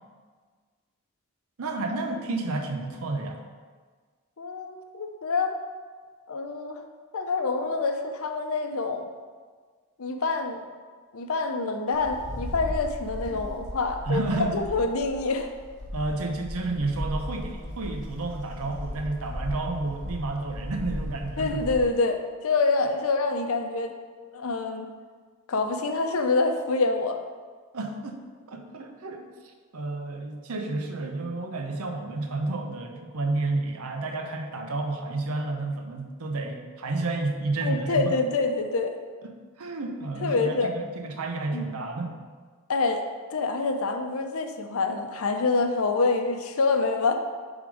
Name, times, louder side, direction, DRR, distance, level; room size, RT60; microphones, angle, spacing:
voice 1, 1.6-3.4 14.1-14.6 15.9-21.7 27.7-28.2 28.5-29.3 29.7-38.1 39.2-42.2, right 2 dB, 85° right, 4 dB, 0.7 m, -31 dB
voice 2, 4.4-5.6 6.3-6.8 7.1-9.1 10.0-10.6 11.1-15.5 21.4-23.9 24.3-24.9 25.5-27.2 37.6-39.0 40.2-40.7 41.5-41.7 42.7-43.0 43.3-47.1, left 3 dB, 70° left, 6 dB, 0.6 m, -26 dB
Wind, 11.9-21.9, left 1 dB, 55° left, 1.2 m, -37 dB
6.9 x 3.6 x 4.9 m, 1.5 s
head